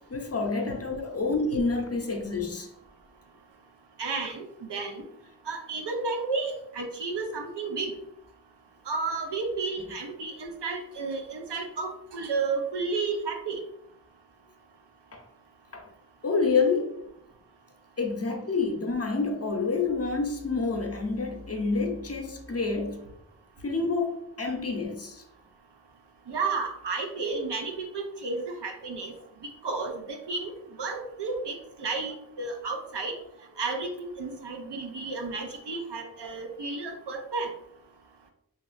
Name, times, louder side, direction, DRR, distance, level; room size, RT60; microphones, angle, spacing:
voice 1, 0.1-2.7 15.1-15.2 15.7-15.9 16.2-16.9 18.0-23.0 23.6-25.2, left 4 dB, 40° left, 0.6 m, -28 dB
voice 2, 4.0-4.4 4.7-5.0 5.5-7.9 8.9-13.6 26.3-29.1 29.6-30.5 30.8-33.1 33.6-37.5, right 4 dB, 90° right, 0.6 m, -32 dB
3.0 x 2.8 x 2.5 m
wide cardioid pair, 45°, 40 cm